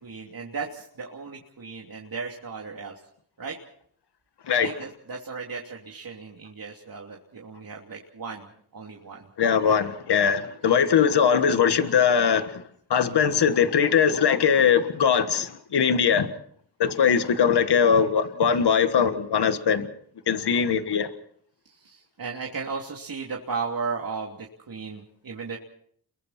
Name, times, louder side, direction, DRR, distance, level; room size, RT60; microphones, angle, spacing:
voice 1, 0.0-2.9 3.4-3.6 4.6-9.3 10.6-10.7 20.4-20.8 21.6-25.6, right 5 dB, 60° right, 3.1 m, -36 dB
voice 2, 9.4-12.6 12.9-16.3 16.8-19.9 20.3-21.1, left 7 dB, 80° left, 1.6 m, -21 dB
30.0 x 23.0 x 4.4 m
cardioid pair, 55°, 40 cm